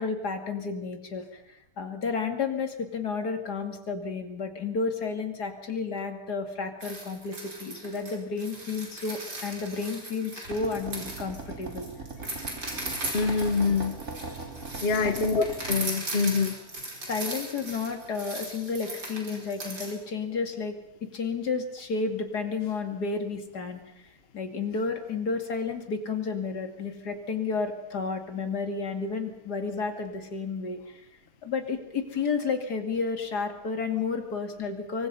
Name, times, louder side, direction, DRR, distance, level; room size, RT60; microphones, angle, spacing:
voice 1, 0.0-11.9 12.2-12.4 15.0-15.3 17.0-23.8 24.3-31.0 31.4-35.1, left 4 dB, 70° left, 5 dB, 2.9 m, -32 dB
sound 1, 6.8-19.9, right 2 dB, 70° right, 5.4 m, -38 dB
sound 2, 10.4-15.8, right 3 dB, 45° right, 3.3 m, -40 dB
voice 2, 13.1-13.9 14.8-16.5, left 4 dB, 40° left, 8 dB, 1.3 m, -25 dB
24.5 x 24.0 x 5.5 m, 0.78 s
omnidirectional pair, 1.8 m